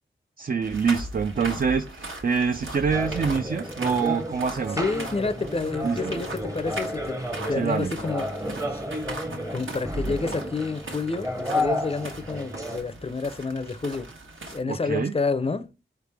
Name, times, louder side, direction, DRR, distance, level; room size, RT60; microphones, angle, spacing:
voice 1, 0.4-4.8 5.8-6.0 7.6-7.9 10.0-10.2 14.7-15.1, right 5 dB, 45° right, 0.4 m, -25 dB
sound 1, 0.6-14.6, right 2 dB, 70° right, 1.2 m, -39 dB
sound 2, 2.9-12.8, left 1 dB, 15° right, 0.7 m, -32 dB
voice 2, 4.7-7.2 7.5-8.3 8.7-8.8 9.5-14.1 14.5-15.7, left 4 dB, 30° left, 0.5 m, -29 dB
4.7 x 3.3 x 3.3 m
wide cardioid pair, 55°, 21 cm